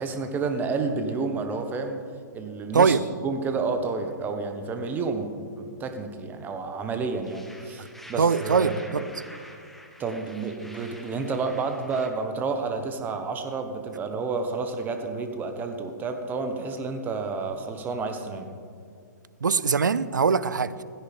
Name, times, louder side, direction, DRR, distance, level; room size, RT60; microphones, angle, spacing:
voice 1, 0.0-2.0 2.3-3.0 3.2-5.3 5.6-9.1 10.0-18.5, right 4 dB, 20° right, 6 dB, 1.4 m, -30 dB
voice 2, 2.7-3.1 7.8-7.9 8.2-9.0 19.4-20.8, right 5 dB, 75° right, 16 dB, 0.6 m, -22 dB
sound 1, 7.2-12.1, left 1 dB, ahead, 1.3 m, -47 dB
17.0 x 16.0 x 3.6 m, 2.3 s
figure-of-eight pair, 120°, 10 cm